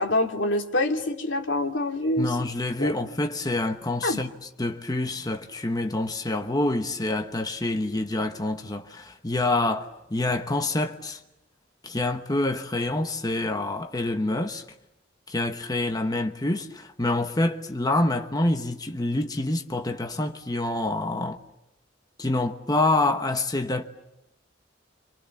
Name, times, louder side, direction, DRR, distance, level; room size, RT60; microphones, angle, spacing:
voice 1, 0.0-2.4 2.8-2.9 4.0-4.2, left 1 dB, 80° left, 2.7 m, -25 dB
voice 2, 2.2-4.3 4.6-11.2 11.8-14.6 15.3-21.4 22.2-23.8, left 2 dB, 20° left, 1.1 m, -27 dB
30.0 x 26.5 x 7.2 m
head